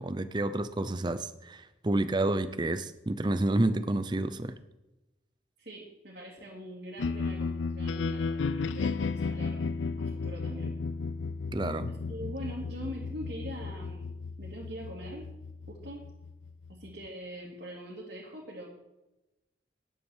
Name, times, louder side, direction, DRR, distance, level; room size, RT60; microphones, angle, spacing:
voice 1, 0.0-4.5 11.5-11.9, right 2 dB, 25° right, 11 dB, 0.5 m, -29 dB
voice 2, 5.6-9.6 10.0-10.8 11.9-15.3 15.7-16.1 16.7-18.7, equal, 60° right, -4 dB, 2.4 m, -43 dB
sound 1, 7.0-17.1, left 4 dB, 90° left, 0.4 m, -34 dB
10.5 x 8.1 x 7.3 m, 0.98 s
head